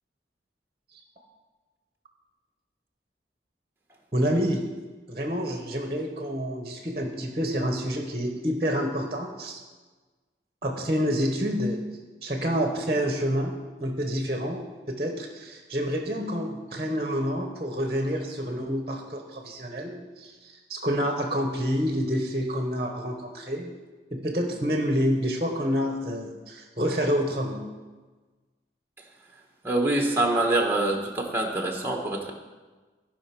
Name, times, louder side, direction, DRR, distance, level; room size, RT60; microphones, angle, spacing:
voice 1, 4.1-4.7 5.1-9.6 10.6-11.8 12.2-13.5 13.8-23.7 24.1-27.6, equal, 30° right, 2 dB, 1.0 m, -28 dB
voice 2, 29.6-32.3, right 2 dB, 15° right, 2 dB, 1.2 m, -25 dB
15.0 x 5.1 x 5.9 m, 1.3 s
head